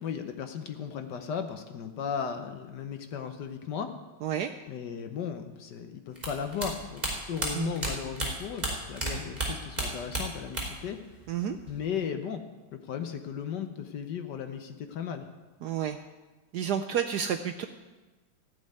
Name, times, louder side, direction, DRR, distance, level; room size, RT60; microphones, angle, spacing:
voice 1, 0.0-3.9 4.7-11.0 11.7-12.4 12.7-15.3, left 7 dB, 65° left, 7 dB, 1.3 m, -36 dB
sound 1, 6.2-9.1 9.4-10.9 11.1-11.9, right 2 dB, 20° right, 3.1 m, -32 dB
voice 2, 15.6-16.0 16.5-17.7, right 9 dB, 75° right, 7 dB, 0.9 m, -30 dB
15.0 x 5.4 x 9.3 m, 1.2 s
omnidirectional pair, 2.3 m